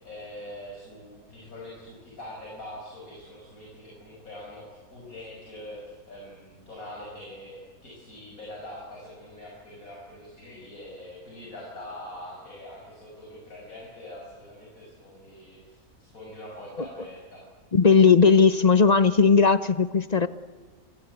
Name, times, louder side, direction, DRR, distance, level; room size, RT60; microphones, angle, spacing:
voice 1, 0.0-17.4, left 1 dB, 70° left, -3 dB, 6.5 m, -43 dB
voice 2, 17.7-20.3, left 5 dB, 35° left, 13 dB, 0.8 m, -18 dB
28.0 x 21.0 x 8.4 m, 1.5 s
omnidirectional pair, 1.5 m